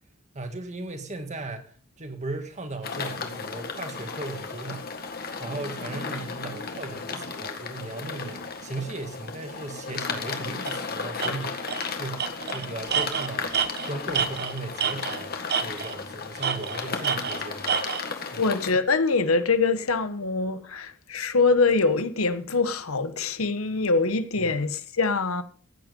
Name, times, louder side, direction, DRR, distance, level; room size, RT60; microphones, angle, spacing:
voice 1, 0.3-4.9 5.4-11.7 12.0-17.8 18.3-18.4, right 2 dB, 35° right, 1.9 m, -37 dB
sound 1, 2.8-18.7, left 5 dB, 50° left, 1.8 m, -35 dB
Tools, 10.7-10.8 11.2-11.3 11.7-11.9 12.2-15.2 15.5-16.0 16.4-18.0, right 7 dB, 50° right, 1.1 m, -28 dB
voice 2, 18.4-25.4, left 3 dB, 90° left, 1.2 m, -24 dB
15.0 x 9.2 x 5.3 m
head